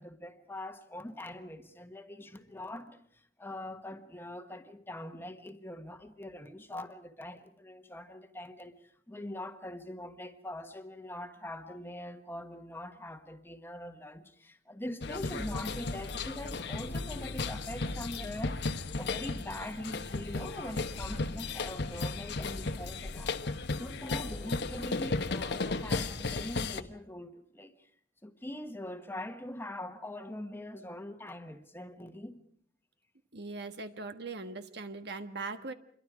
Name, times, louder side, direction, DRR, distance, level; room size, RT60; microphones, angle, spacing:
voice 1, 0.0-23.3 23.7-27.9 28.2-32.4, left 1 dB, 10° left, 1.4 m, -43 dB
sound 1, 15.0-26.8, left 3 dB, 65° left, 1.1 m, -35 dB
voice 2, 33.3-35.7, right 3 dB, 60° right, 1.4 m, -40 dB
27.0 x 23.0 x 5.0 m
head